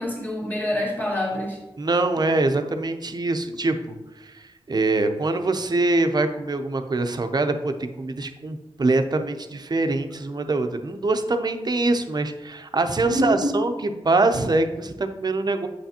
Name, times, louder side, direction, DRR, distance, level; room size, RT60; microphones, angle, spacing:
voice 1, 0.0-1.6 13.0-13.5, equal, 20° left, -3 dB, 2.2 m, -26 dB
voice 2, 1.8-15.7, right 2 dB, 40° right, 7 dB, 0.6 m, -24 dB
7.8 x 5.7 x 2.9 m, 1.0 s
wide cardioid pair, 65°, 10 cm